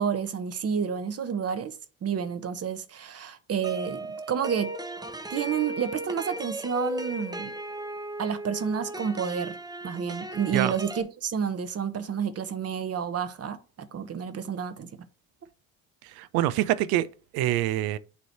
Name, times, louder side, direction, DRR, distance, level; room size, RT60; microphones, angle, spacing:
voice 1, 0.0-1.8 2.0-4.7 5.3-7.5 8.2-9.6 9.8-14.9, right 7 dB, 40° right, 0.9 m, -30 dB
sound 1, 3.6-11.0, right 1 dB, 10° right, 0.9 m, -36 dB
voice 2, 16.0-17.1 17.3-18.0, right 13 dB, 65° right, 0.6 m, -25 dB
8.4 x 3.1 x 4.4 m
hypercardioid pair, 55°, 39 cm